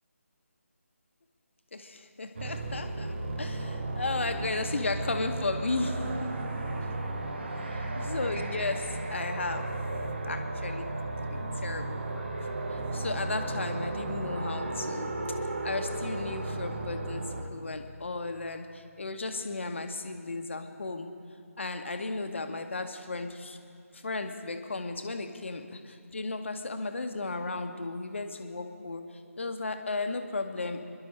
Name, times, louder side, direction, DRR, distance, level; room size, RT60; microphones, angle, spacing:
voice 1, 1.7-6.4 7.6-9.7 10.2-10.9 11.3-12.3 12.7-15.1 15.4-17.2 17.5-21.1 21.6-23.6 23.9-29.0 29.4-30.8, left 3 dB, 50° left, 6 dB, 1.2 m, -35 dB
sound 1, 2.4-17.4, right 2 dB, 45° right, 1.3 m, -34 dB
29.5 x 11.0 x 3.3 m, 2.4 s
figure-of-eight pair, 155°, 8 cm